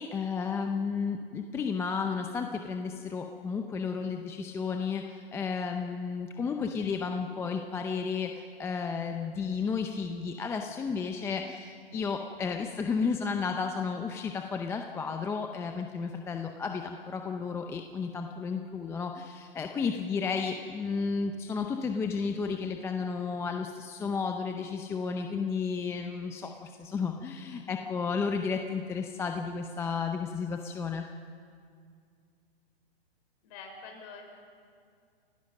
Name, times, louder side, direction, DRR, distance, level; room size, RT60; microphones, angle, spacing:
voice 1, 0.0-31.1, left 5 dB, 10° left, 4 dB, 0.5 m, -33 dB
voice 2, 33.4-34.2, left 4 dB, 40° left, 2 dB, 5.3 m, -45 dB
29.0 x 16.0 x 6.5 m, 2.2 s
hypercardioid pair, 140°, 30 cm